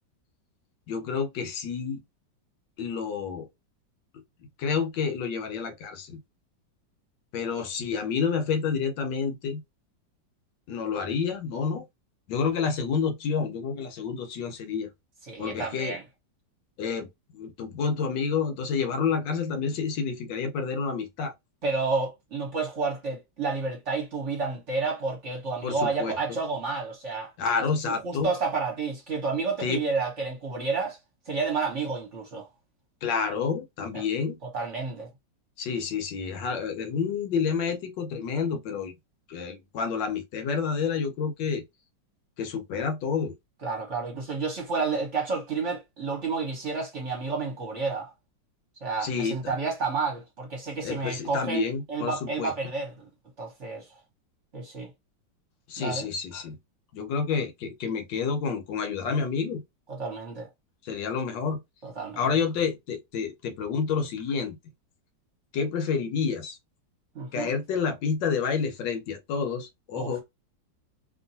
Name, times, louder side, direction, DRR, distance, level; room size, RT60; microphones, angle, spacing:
voice 1, 0.9-2.0 2.8-3.5 4.6-6.2 7.3-9.6 10.7-11.8 12.3-14.9 15.4-16.0 16.8-21.3 25.6-26.4 27.4-28.3 29.6-29.8 33.0-34.4 35.6-38.9 39.3-41.6 42.4-43.3 49.0-49.6 50.8-52.5 55.7-56.6 56.9-59.6 60.8-61.6 62.2-64.6 65.5-66.6 67.3-70.2, left 5 dB, 75° left, 1.4 m, -29 dB
voice 2, 15.3-16.0 21.6-27.3 27.9-31.0 31.3-32.5 33.9-34.0 34.4-35.1 43.6-48.1 48.8-53.0 53.4-53.9 54.5-54.9 55.8-56.1 59.9-60.5 61.8-62.3 67.1-67.5 70.0-70.2, right 4 dB, 45° right, 1.2 m, -30 dB
3.0 x 2.5 x 2.7 m
omnidirectional pair, 2.0 m